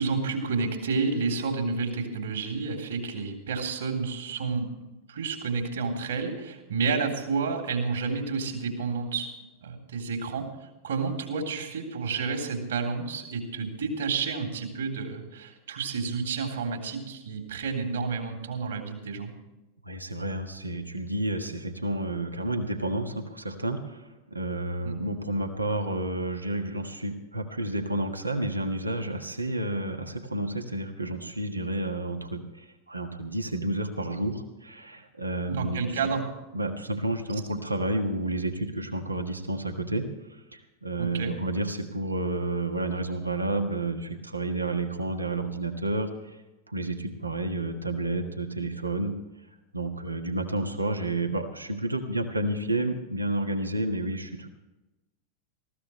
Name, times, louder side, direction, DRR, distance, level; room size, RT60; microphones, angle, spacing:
voice 1, 0.0-4.7 5.1-9.3 9.6-10.5 10.8-19.3 24.8-25.0 35.5-36.3 41.0-41.4, right 4 dB, 65° right, 3 dB, 3.3 m, -30 dB
voice 2, 19.8-35.8 36.5-46.1 46.7-49.1 49.7-54.5, right 2 dB, 85° right, 6 dB, 1.5 m, -30 dB
19.5 x 15.5 x 3.2 m, 1.0 s
figure-of-eight pair, 90°, 0 cm